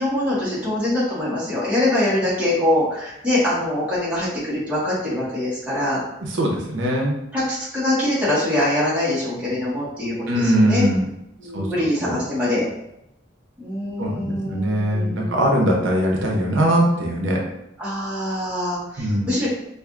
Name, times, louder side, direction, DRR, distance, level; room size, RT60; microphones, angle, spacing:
voice 1, 0.0-6.0 7.3-10.9 11.4-12.6 13.6-15.6 17.8-19.5, left 1 dB, 5° right, -9 dB, 1.4 m, -23 dB
voice 2, 6.3-7.2 10.3-11.1 11.5-11.7 12.0-12.2 14.0-17.4 19.0-19.3, equal, 75° right, -1 dB, 0.7 m, -21 dB
4.7 x 2.5 x 2.4 m, 0.84 s
head